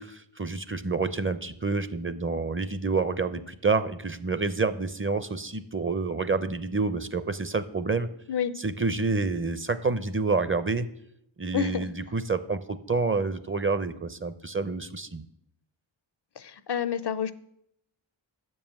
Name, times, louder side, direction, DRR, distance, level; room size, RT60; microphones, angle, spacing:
voice 1, 0.0-8.1 8.6-10.9 11.4-15.2, right 4 dB, 25° right, 13 dB, 0.6 m, -28 dB
voice 2, 11.5-11.9 16.4-17.3, left 9 dB, 55° left, 15 dB, 0.6 m, -29 dB
6.9 x 5.5 x 7.3 m, 0.75 s
cardioid pair, 45°, 48 cm